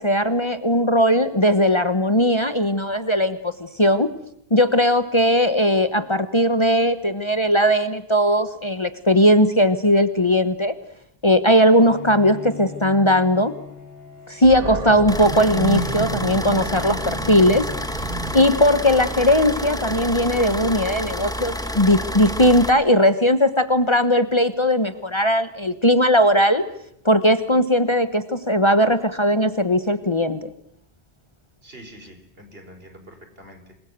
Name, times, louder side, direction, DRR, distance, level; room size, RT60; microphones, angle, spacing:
voice 1, 0.0-4.1 4.5-10.7 11.2-13.5 14.3-18.0 18.3-26.6 27.0-30.5, equal, 30° left, 11 dB, 1.1 m, -18 dB
Bowed string instrument, 11.8-18.5, left 6 dB, 65° left, 3.1 m, -41 dB
Animal, 14.4-21.5, right 3 dB, 40° right, 1.3 m, -32 dB
sound 1, 15.1-22.7, equal, 5° left, 1.5 m, -29 dB
voice 2, 31.6-33.9, equal, 65° right, 6 dB, 4.8 m, -45 dB
27.0 x 21.5 x 8.2 m, 0.72 s
omnidirectional pair, 1.1 m